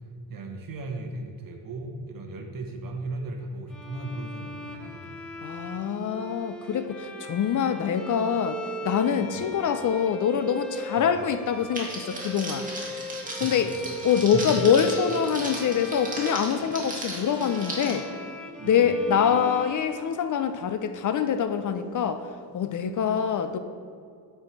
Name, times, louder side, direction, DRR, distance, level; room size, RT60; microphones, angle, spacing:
voice 1, 0.3-5.4 9.2-9.5 11.0-11.1 13.4-13.8 14.3-14.4 18.6-19.0, right 2 dB, 55° right, 3 dB, 1.1 m, -37 dB
Bowed string instrument, 3.7-20.7, equal, ahead, 0.6 m, -40 dB
voice 2, 5.4-12.7 13.4-13.7 14.0-18.1 18.6-22.3 22.5-23.6, left 7 dB, 50° left, 10 dB, 0.5 m, -25 dB
Crackle, 11.7-17.9, right 2 dB, 20° right, 1.7 m, -36 dB
8.6 x 4.7 x 4.6 m, 2.3 s
cardioid pair, 120°, 40 cm